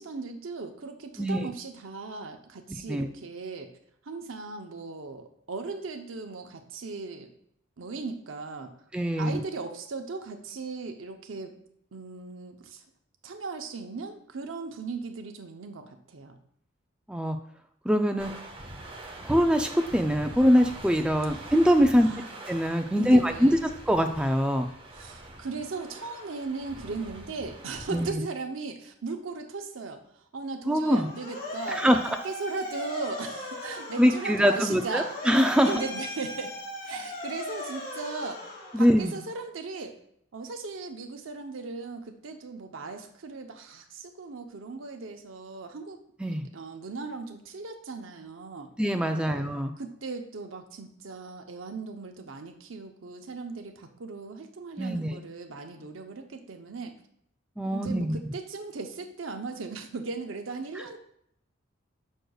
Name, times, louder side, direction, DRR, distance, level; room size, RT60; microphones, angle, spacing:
voice 1, 0.0-3.7 4.1-7.3 7.8-8.7 9.2-11.5 11.9-12.8 13.2-16.4 21.4-21.5 21.9-22.3 22.9-23.6 24.9-32.0 32.2-35.1 35.6-36.6 36.8-38.4 38.8-39.9 40.3-46.0 46.5-48.7 49.1-56.9 57.6-61.0, right 4 dB, 85° right, 6 dB, 0.7 m, -37 dB
voice 2, 8.9-9.4 17.1-17.4 17.9-18.3 19.2-22.1 22.5-23.6 23.9-24.7 27.9-28.2 30.7-31.1 31.7-32.2 34.0-35.8 38.7-39.2 46.2-46.4 48.8-49.7 54.8-55.2 57.6-58.2, equal, 5° right, 5 dB, 0.3 m, -23 dB
sound 1, 18.2-28.1, right 1 dB, 25° right, 0.7 m, -44 dB
Motor vehicle (road) / Siren, 30.7-39.3, left 2 dB, 45° left, 1.6 m, -38 dB
6.3 x 6.3 x 2.3 m, 0.71 s
head